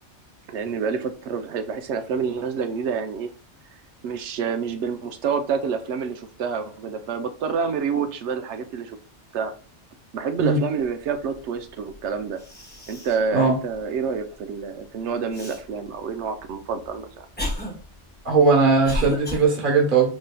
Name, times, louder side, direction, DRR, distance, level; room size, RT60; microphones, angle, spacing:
voice 1, 0.5-3.3 4.0-9.0 9.3-9.5 10.1-12.4 12.9-17.3, right 6 dB, 80° right, 8 dB, 0.9 m, -28 dB
Cough, 11.9-12.0 12.4-13.3 13.7-13.8 15.3-15.6 16.4-19.4, left 1 dB, 10° left, 1.1 m, -32 dB
voice 2, 18.2-20.1, right 4 dB, 50° right, -1 dB, 1.2 m, -18 dB
5.0 x 2.7 x 2.2 m, 0.39 s
omnidirectional pair, 1.2 m